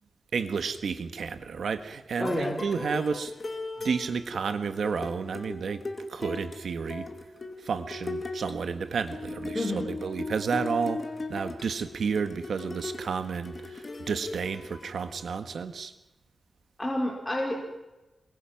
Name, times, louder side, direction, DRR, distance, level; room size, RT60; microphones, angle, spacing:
voice 1, 0.3-3.3 3.8-5.8 6.1-7.1 7.6-15.9, right 5 dB, 75° right, 9 dB, 1.6 m, -31 dB
sound 1, 2.2-15.4, left 3 dB, 35° left, 2.6 m, -38 dB
voice 2, 2.2-2.6 9.5-9.9 16.8-17.6, left 1 dB, 10° left, -2 dB, 5.0 m, -29 dB
28.0 x 23.0 x 6.0 m, 1.0 s
wide cardioid pair, 125°, 0 cm